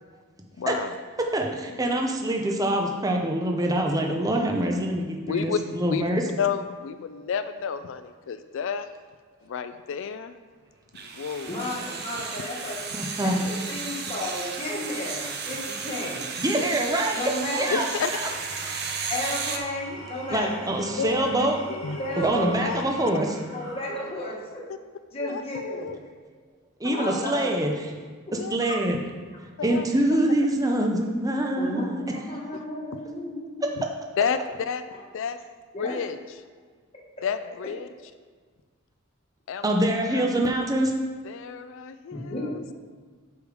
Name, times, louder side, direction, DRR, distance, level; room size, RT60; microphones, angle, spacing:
voice 1, 0.6-0.9 5.3-5.6 5.9-6.1 6.4-8.9 9.4-10.3 11.0-11.5 16.6-16.7 17.7-18.1 21.0-22.1 22.3-22.8 25.2-26.0 26.8-27.1 28.4-28.6 29.6-29.9 32.5-32.6 34.2-34.8 35.1-35.4 35.8-36.2 37.2-37.9 39.5-39.6 40.1-40.2 41.2-42.6, left 6 dB, 65° left, 11 dB, 0.4 m, -31 dB
voice 2, 1.2-6.2 12.9-13.3 16.4-18.2 20.3-21.6 22.2-23.4 26.8-27.7 28.5-29.0 29.6-32.0 39.6-40.9, right 1 dB, 15° right, 2 dB, 0.7 m, -25 dB
sound 1, 10.9-19.6, right 5 dB, 50° right, 0.7 m, -34 dB
voice 3, 11.5-12.8 13.2-16.3 17.1-17.9 19.1-20.7 22.0-22.5 23.5-24.6 25.1-26.0 26.9-27.6 28.7-28.8 31.6-33.8 34.9-35.0 35.7-36.0 37.2-37.3 42.1-42.7, left 1 dB, 30° left, -4 dB, 1.3 m, -33 dB
Engine / Tools, 18.1-24.5, right 2 dB, 85° right, 2.1 m, -43 dB
6.8 x 5.0 x 4.8 m, 1.5 s
head